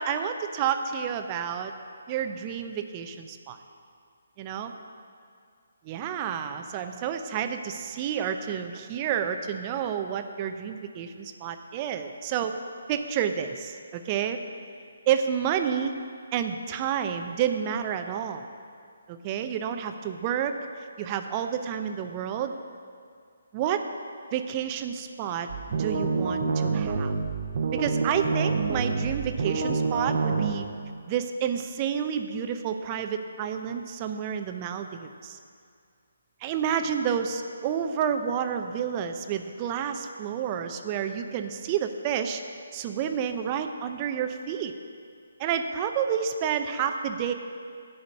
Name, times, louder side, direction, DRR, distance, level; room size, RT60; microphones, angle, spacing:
voice 1, 0.0-1.7 2.1-3.6 4.4-4.7 5.8-12.5 12.9-14.4 15.1-15.9 16.3-18.4 19.1-20.5 21.0-22.5 23.5-23.8 24.3-27.1 27.7-30.7 31.1-35.4 36.4-42.4 42.7-44.7 45.4-47.3, right 8 dB, 25° right, 7 dB, 0.6 m, -30 dB
sound 1, 25.5-30.5, right 4 dB, 50° right, 0.9 m, -27 dB
11.0 x 5.1 x 8.2 m, 2.3 s
figure-of-eight pair, 150°, 0 cm